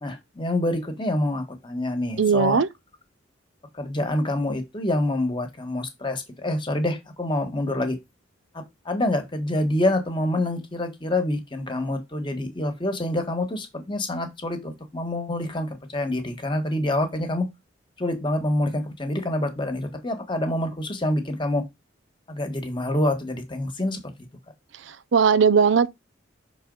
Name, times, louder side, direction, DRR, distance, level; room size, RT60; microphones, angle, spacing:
voice 1, 0.0-2.6 3.7-8.0 8.5-17.5 18.0-21.6 22.3-24.0, left 1 dB, 25° left, 1.5 m, -26 dB
voice 2, 2.2-2.7 24.9-25.9, right 6 dB, 75° right, 0.5 m, -19 dB
6.7 x 4.0 x 3.9 m
head